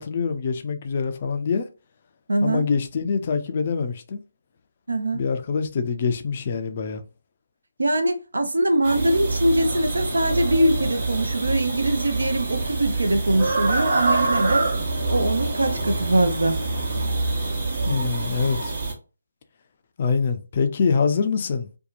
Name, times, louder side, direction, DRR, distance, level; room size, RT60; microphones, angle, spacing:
voice 1, 0.0-1.6 2.4-4.2 5.1-7.0 17.9-18.7 20.0-21.7, left 5 dB, 35° left, 0.4 m, -24 dB
voice 2, 2.3-2.6 4.9-5.2 7.8-14.7 15.1-16.6, right 1 dB, 70° right, 0.6 m, -22 dB
sound 1, 8.8-18.9, right 2 dB, 45° right, 0.9 m, -26 dB
2.7 x 2.2 x 2.5 m
figure-of-eight pair, 150°, 0 cm